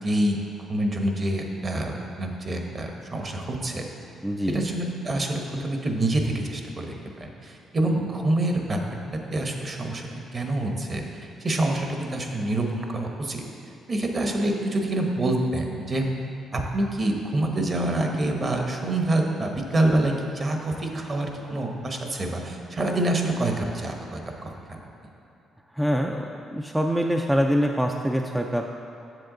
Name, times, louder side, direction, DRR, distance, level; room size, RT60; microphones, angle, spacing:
voice 1, 0.0-3.8 4.5-13.4 13.9-16.0 16.5-24.8, right 1 dB, 35° right, 2 dB, 1.0 m, -27 dB
voice 2, 4.2-4.7 25.7-28.7, equal, 5° right, 2 dB, 0.4 m, -24 dB
7.7 x 7.0 x 3.8 m, 2.8 s
cardioid pair, 90°, 0 cm